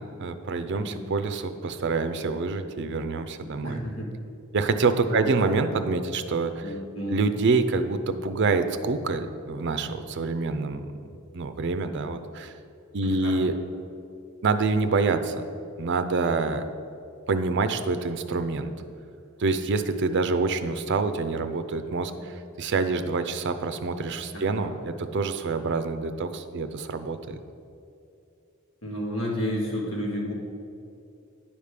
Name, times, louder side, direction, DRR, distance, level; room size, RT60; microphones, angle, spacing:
voice 1, 0.0-3.8 4.5-6.8 7.1-10.9 11.3-12.5 12.9-13.6 14.4-15.5 15.8-16.6 17.3-18.7 19.4-27.4, right 4 dB, 55° right, 9 dB, 0.5 m, -26 dB
voice 2, 3.6-4.1 5.1-5.5 6.6-7.2 13.0-13.4 24.3-24.7 28.8-30.3, equal, 70° left, -3 dB, 1.8 m, -31 dB
9.9 x 3.6 x 6.6 m, 2.6 s
head